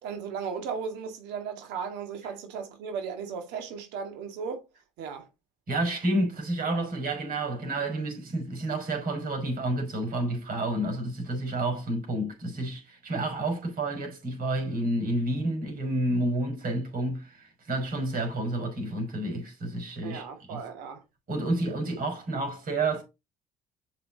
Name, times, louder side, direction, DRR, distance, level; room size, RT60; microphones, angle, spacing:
voice 1, 0.0-4.6 5.0-5.3 20.0-21.0, right 6 dB, 75° right, 2.1 m, -36 dB
voice 2, 5.7-20.7 21.3-23.0, right 1 dB, 55° right, 5.5 m, -30 dB
6.7 x 6.2 x 4.1 m
hypercardioid pair, 60°, 18 cm